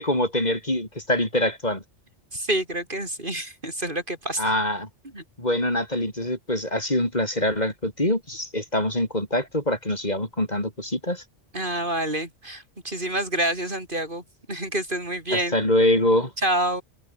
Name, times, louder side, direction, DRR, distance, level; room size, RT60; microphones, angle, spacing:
voice 1, 0.0-1.8 4.4-4.9 5.4-11.2 15.3-16.3, left 1 dB, 35° left, 5.4 m, -24 dB
voice 2, 2.3-4.5 5.1-5.2 11.5-14.2 14.5-15.6 16.4-16.8, right 1 dB, 45° right, 6.1 m, -27 dB
open air
omnidirectional pair, 1.2 m